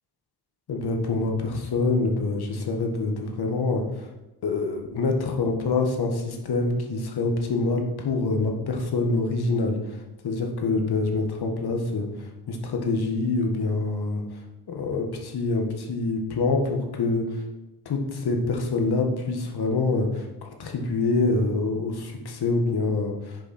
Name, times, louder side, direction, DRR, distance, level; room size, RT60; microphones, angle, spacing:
voice 1, 0.7-4.1 4.4-14.2 14.7-17.4 17.9-20.3 20.6-23.4, left 3 dB, 70° left, 2 dB, 1.7 m, -26 dB
10.0 x 6.7 x 4.3 m, 1.0 s
wide cardioid pair, 135°, 40 cm